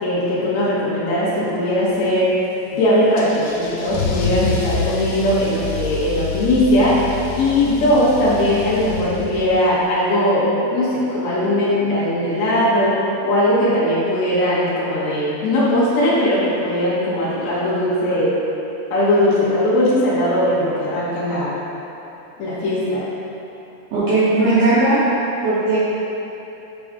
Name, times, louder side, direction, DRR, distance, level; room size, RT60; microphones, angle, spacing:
voice 1, 0.0-2.3 2.7-7.0 7.4-12.9 13.2-18.3 18.9-21.6 22.4-23.1, left 1 dB, 75° left, -9 dB, 1.6 m, -19 dB
Car / Engine starting / Accelerating revving vroom, 3.2-9.7, left 5 dB, 90° left, 2.1 m, -27 dB
voice 2, 23.9-25.0 25.4-25.8, right 2 dB, 75° right, -13 dB, 1.8 m, -17 dB
6.1 x 6.0 x 3.6 m, 3.0 s
omnidirectional pair, 5.2 m